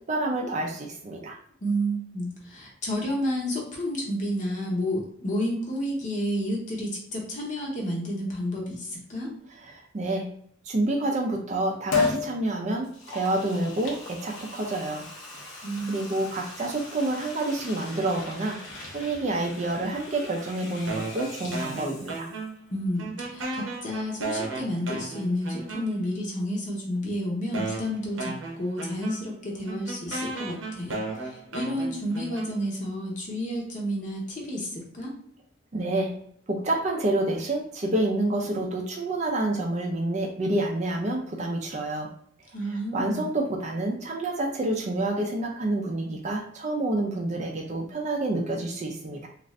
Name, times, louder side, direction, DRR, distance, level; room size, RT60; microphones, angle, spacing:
voice 1, 0.1-1.4 9.6-10.3 10.6-15.1 15.4-15.5 15.9-18.6 18.9-22.3 35.7-36.1 36.5-42.1 42.7-49.3, right 2 dB, 35° right, 1 dB, 0.4 m, -28 dB
voice 2, 1.6-9.3 15.6-16.0 22.7-35.1 42.5-43.3, equal, 40° left, -1 dB, 0.8 m, -31 dB
Liquid, 11.9-12.3 12.8-22.5 22.8-22.9, left 4 dB, 70° left, 0.8 m, -35 dB
sound 1, 20.9-22.7 23.0-26.2 26.9-27.0 27.5-32.9, right 3 dB, 80° right, 0.7 m, -35 dB
2.4 x 2.4 x 3.1 m, 0.64 s
head